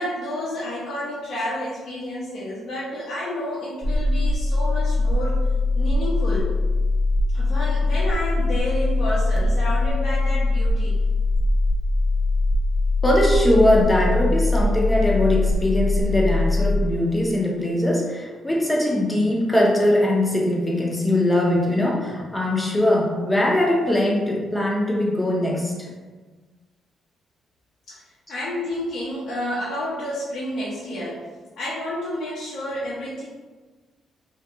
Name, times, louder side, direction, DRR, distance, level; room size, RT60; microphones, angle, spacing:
voice 1, 0.0-5.4 5.7-6.5 7.3-11.0 27.9-28.0 28.3-31.2 31.6-33.2, left 1 dB, 65° left, -9 dB, 0.6 m, -30 dB
sound 1, 3.8-16.8, left 2 dB, 35° right, 0.7 m, -21 dB
voice 2, 13.0-25.9, left 1 dB, 10° left, -1 dB, 0.6 m, -21 dB
2.4 x 2.2 x 2.9 m, 1.3 s
cardioid pair, 90°, 0 cm